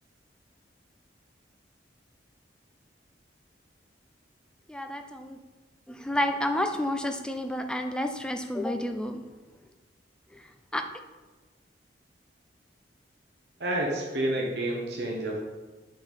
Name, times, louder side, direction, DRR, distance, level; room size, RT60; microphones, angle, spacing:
voice 1, 4.7-5.4 5.9-9.2 10.3-10.9, left 1 dB, 5° left, 6 dB, 0.3 m, -30 dB
voice 2, 13.6-15.4, right 1 dB, 65° right, -1 dB, 0.9 m, -29 dB
7.6 x 3.8 x 4.1 m, 1.2 s
head